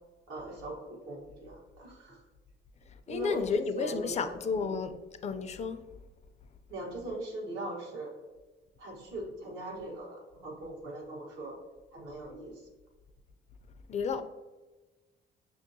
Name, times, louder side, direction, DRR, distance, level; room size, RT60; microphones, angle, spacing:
voice 1, 0.3-2.2 3.1-4.7 6.7-8.2 8.8-11.6 11.9-12.7, right 1 dB, 85° right, 1.2 m, -40 dB
voice 2, 3.1-5.0 5.2-5.8 13.9-14.2, left 5 dB, 35° left, 0.4 m, -32 dB
5.6 x 2.7 x 2.6 m
cardioid pair, 90°, 20 cm